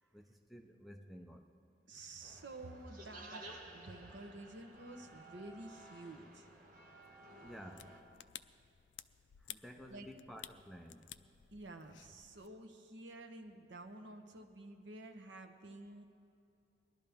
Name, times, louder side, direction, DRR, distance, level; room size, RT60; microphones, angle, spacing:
voice 1, 0.0-1.5 7.4-8.0 9.4-11.1, equal, ahead, 2 dB, 0.5 m, -53 dB
voice 2, 1.9-6.5 9.9-10.1 11.5-16.0, right 2 dB, 70° right, 6 dB, 0.9 m, -51 dB
sound 1, 2.2-8.0, right 1 dB, 45° right, 1.6 m, -55 dB
sound 2, 7.4-12.5, left 13 dB, 70° left, 0.3 m, -55 dB
20.0 x 12.0 x 3.5 m, 2.6 s
head